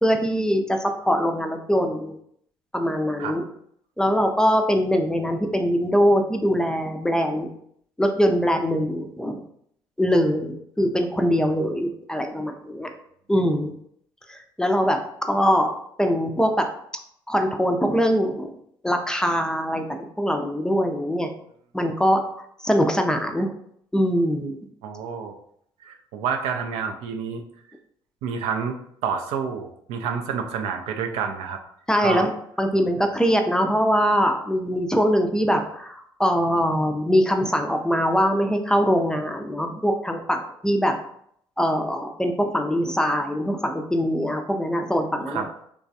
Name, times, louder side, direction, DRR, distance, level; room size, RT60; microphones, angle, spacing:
voice 1, 0.0-2.2 2.7-3.4 4.0-7.5 8.0-9.4 10.0-12.9 13.3-13.7 14.3-15.0 15.3-15.7 16.0-16.7 17.3-18.5 18.8-21.3 21.7-22.3 22.6-23.5 23.9-24.6 31.9-32.3 32.6-41.0 41.6-45.4, equal, 5° left, 5 dB, 0.4 m, -22 dB
voice 2, 24.8-25.4 25.8-27.4 28.2-28.8 29.0-31.6 32.0-32.3 45.3-45.5, right 6 dB, 65° right, 4 dB, 0.4 m, -28 dB
3.2 x 2.2 x 2.6 m, 0.68 s
hypercardioid pair, 50°, 11 cm